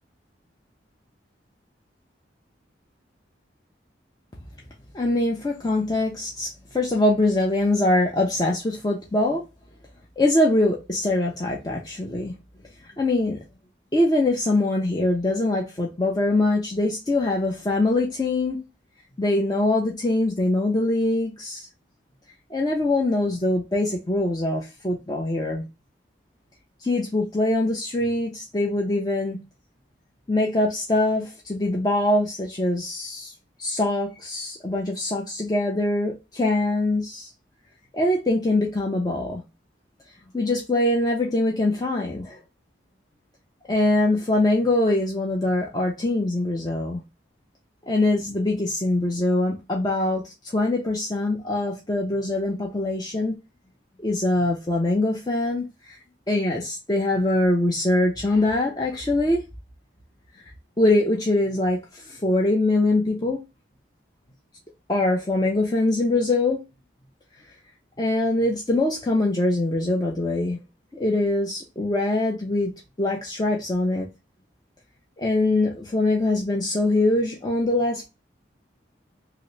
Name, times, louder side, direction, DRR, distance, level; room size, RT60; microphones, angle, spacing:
voice 1, 4.9-9.4 10.2-12.3 13.0-13.4 13.9-18.6 19.2-21.7 22.5-25.7 26.8-29.4 30.3-33.3 33.6-37.3 37.9-39.4 40.3-42.4 43.7-47.0 47.9-53.4 54.0-56.0 56.3-59.4 60.8-63.4 64.9-66.6 68.0-70.6 70.9-74.1 75.2-78.1, left 2 dB, 20° left, 0.5 m, -23 dB
2.9 x 2.9 x 3.1 m
head